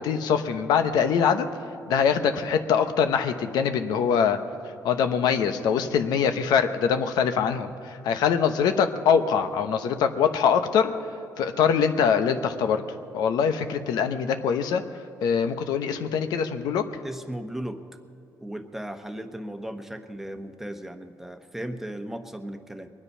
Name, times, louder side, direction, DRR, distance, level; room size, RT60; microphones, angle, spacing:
voice 1, 0.0-1.5 1.9-4.4 4.8-10.9 11.4-12.8 13.1-14.8 15.2-16.8, left 7 dB, 90° left, 8 dB, 0.9 m, -23 dB
voice 2, 17.0-17.8 18.4-22.9, right 1 dB, 5° right, 7 dB, 1.0 m, -36 dB
22.0 x 9.7 x 5.6 m, 2.7 s
cardioid pair, 105°, 7 cm